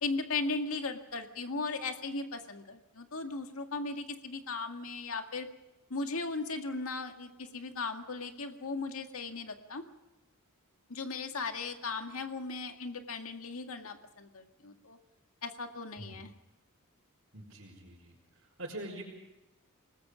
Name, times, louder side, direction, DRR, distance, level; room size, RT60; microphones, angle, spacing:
voice 1, 0.0-5.5 5.9-9.8 10.9-15.0 15.4-16.3, left 3 dB, 75° left, 5 dB, 2.0 m, -37 dB
voice 2, 17.3-19.0, right 1 dB, 60° right, -4 dB, 4.7 m, -44 dB
28.5 x 20.0 x 5.1 m, 0.99 s
head